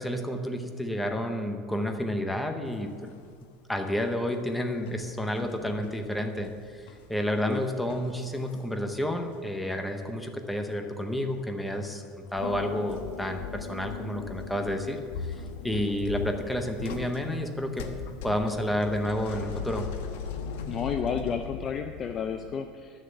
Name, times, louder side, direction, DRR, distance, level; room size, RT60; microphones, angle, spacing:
voice 1, 0.0-3.1 3.7-12.0 12.3-17.9 18.2-19.9, equal, 5° left, 5 dB, 0.8 m, -30 dB
sound 1, 2.8-3.5 3.8-9.4 9.7-10.7 11.0-11.2 11.6-12.3 12.8-14.6 15.0-22.6, left 5 dB, 80° left, 1.1 m, -40 dB
voice 2, 5.5-5.9 7.5-7.6 20.7-23.0, left 7 dB, 25° left, 7 dB, 0.4 m, -32 dB
Harp, 12.4-19.1, left 7 dB, 50° left, 0.8 m, -42 dB
11.0 x 6.7 x 7.7 m, 2.1 s
cardioid pair, 180°, 0 cm